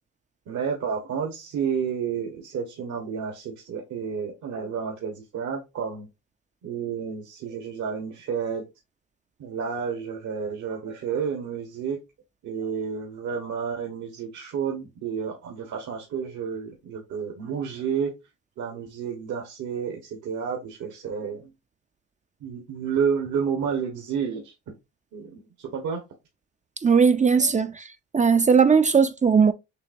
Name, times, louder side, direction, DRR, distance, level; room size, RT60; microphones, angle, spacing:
voice 1, 0.5-6.1 6.6-8.6 9.4-12.0 12.4-18.1 18.6-21.5 22.4-24.5 25.1-26.0 27.1-27.5, right 6 dB, 70° right, 1.4 m, -30 dB
voice 2, 26.8-27.7 28.1-29.5, right 6 dB, 25° right, 0.4 m, -18 dB
6.8 x 2.8 x 2.6 m
cardioid pair, 90°, 30 cm